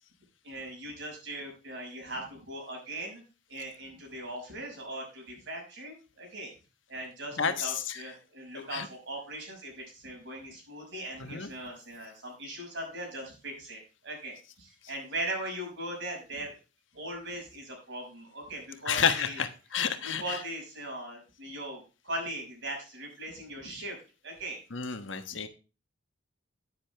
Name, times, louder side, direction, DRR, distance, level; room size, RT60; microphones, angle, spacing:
voice 1, 0.4-3.2 3.5-6.5 6.9-16.5 16.9-19.4 20.0-24.0 24.2-24.6, right 1 dB, 60° right, 1 dB, 6.0 m, -39 dB
voice 2, 7.4-7.7 8.7-8.9 11.2-11.5 18.9-20.2 24.7-25.5, left 6 dB, 65° left, 9 dB, 1.3 m, -30 dB
10.5 x 10.0 x 3.4 m, 0.32 s
head